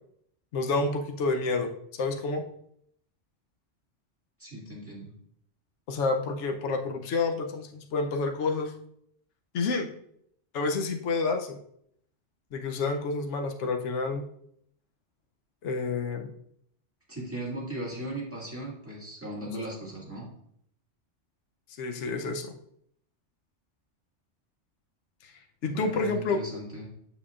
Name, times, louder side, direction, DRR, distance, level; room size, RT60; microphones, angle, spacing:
voice 1, 0.5-2.4 5.9-8.7 9.5-9.9 10.5-11.6 12.5-14.3 15.6-16.3 18.5-18.6 21.8-22.5 25.2-25.3 25.6-26.4, left 3 dB, 75° left, 4 dB, 1.0 m, -29 dB
voice 2, 4.4-5.1 17.1-20.3 25.6-26.9, right 1 dB, 10° right, -5 dB, 2.0 m, -37 dB
7.2 x 6.6 x 2.4 m, 0.70 s
omnidirectional pair, 1.3 m